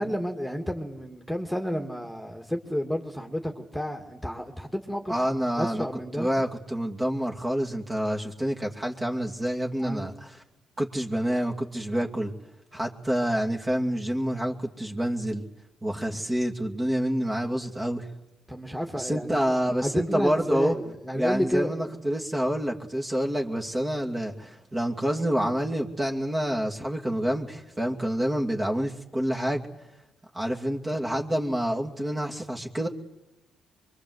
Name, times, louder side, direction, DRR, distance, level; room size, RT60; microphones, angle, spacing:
voice 1, 0.0-5.2 5.6-6.3 9.8-10.1 18.5-19.4 19.8-21.7, equal, ahead, 3 dB, 2.5 m, -30 dB
voice 2, 5.1-5.9 6.2-10.3 10.8-12.3 12.7-15.4 15.8-18.1 19.0-20.8 21.1-29.7 30.3-32.9, equal, 20° right, 0 dB, 2.6 m, -28 dB
24.5 x 23.0 x 8.1 m, 0.96 s
cardioid pair, 90°, 0 cm